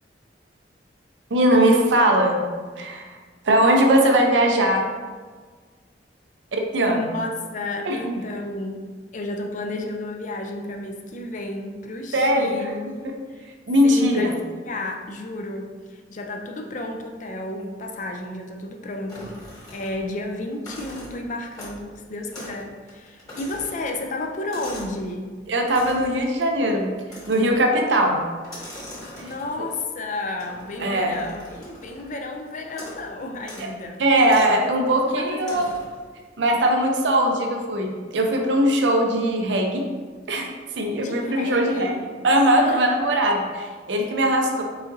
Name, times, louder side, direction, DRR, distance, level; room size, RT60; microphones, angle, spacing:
voice 1, 1.3-2.4 2.8-3.0 3.4-4.9 6.7-7.1 7.9-8.0 12.1-12.5 13.0-13.1 13.7-14.3 25.5-26.9 27.3-28.2 30.8-31.1 34.0-35.7 36.4-39.9 40.3-40.5 40.8-42.0 42.2-44.6, right 1 dB, 85° right, 2 dB, 0.6 m, -20 dB
voice 2, 6.8-8.9 9.1-13.5 13.8-19.4 19.7-25.3 29.2-34.0 34.5-35.6 41.0-42.1 42.6-42.8, left 2 dB, 45° left, 3 dB, 0.4 m, -32 dB
sound 1, 19.1-20.2 20.5-21.9 22.3-22.6 22.9-25.0 25.7-26.2 27.1-27.6 28.4-29.7 30.4-32.1 32.7-33.1 33.4-33.7 34.3-34.6 35.4-36.0, left 1 dB, 20° left, 1.4 m, -41 dB
4.8 x 4.0 x 2.6 m, 1.5 s
head